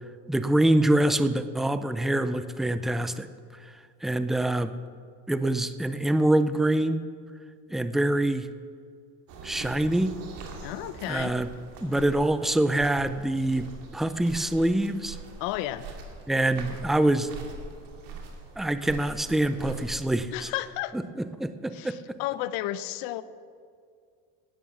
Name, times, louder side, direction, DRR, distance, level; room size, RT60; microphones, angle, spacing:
voice 1, 0.3-3.3 4.0-4.7 5.3-7.0 7.7-8.5 9.4-10.2 11.1-11.5 11.8-13.7 13.9-15.2 16.3-17.3 18.6-20.5 21.2-22.2, right 1 dB, ahead, 12 dB, 0.4 m, -25 dB
sound 1, 9.3-20.2, right 4 dB, 65° right, 2.4 m, -42 dB
voice 2, 10.6-11.4 15.4-15.9 20.3-21.0 21.7-23.2, left 14 dB, 70° left, 15 dB, 0.7 m, -32 dB
11.0 x 9.2 x 7.2 m, 2.2 s
supercardioid pair, 110°, 36 cm